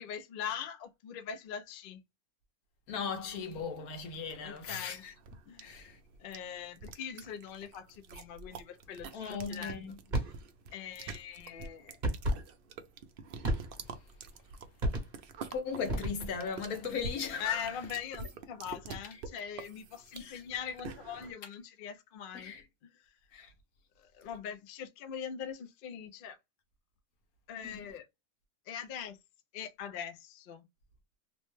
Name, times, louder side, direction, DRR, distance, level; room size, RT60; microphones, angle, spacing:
voice 1, 0.0-2.0 4.4-5.0 5.5-5.9 6.2-9.8 10.7-12.0 17.4-22.5 23.0-23.2 24.0-26.4 27.5-28.1 28.7-29.2 29.5-30.6, left 8 dB, 65° left, 0.5 m, -42 dB
voice 2, 2.9-5.1 5.6-6.0 9.1-9.9 15.5-17.7 20.1-20.4 22.3-22.6 23.3-23.5 27.6-27.8, left 6 dB, 90° left, 1.3 m, -38 dB
sound 1, 4.3-21.3, right 4 dB, 70° right, 0.5 m, -47 dB
sound 2, 10.1-10.4 12.0-12.4 13.4-13.9 14.8-15.3 15.9-16.5, right 1 dB, 35° right, 0.9 m, -32 dB
3.1 x 2.1 x 3.0 m
omnidirectional pair, 1.5 m